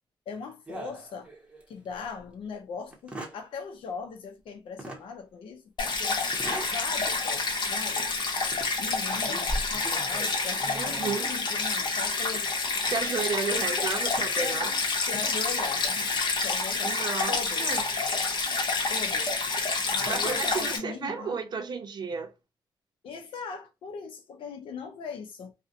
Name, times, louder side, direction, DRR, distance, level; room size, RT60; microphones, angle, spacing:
voice 1, 0.3-1.3 1.7-6.2 6.6-8.2 8.8-12.6 13.5-14.0 14.3-16.0 16.4-17.9 18.9-19.4 19.9-21.4 23.0-25.5, left 5 dB, 85° left, 0.5 m, -39 dB
sound 1, 0.7-1.7 2.2-2.3 2.9-3.4 4.8-5.1 6.3-6.8 7.3-7.5 8.4-8.7 9.1-11.4 12.8-13.1 14.0-14.4, right 1 dB, 15° right, 0.7 m, -39 dB
Stream, 5.8-20.8, left 3 dB, 60° left, 0.9 m, -28 dB
voice 2, 10.7-11.3 12.9-14.7 16.8-17.8 20.1-22.3, right 5 dB, 55° right, 0.5 m, -33 dB
2.5 x 2.1 x 2.5 m
cardioid pair, 105°, 9 cm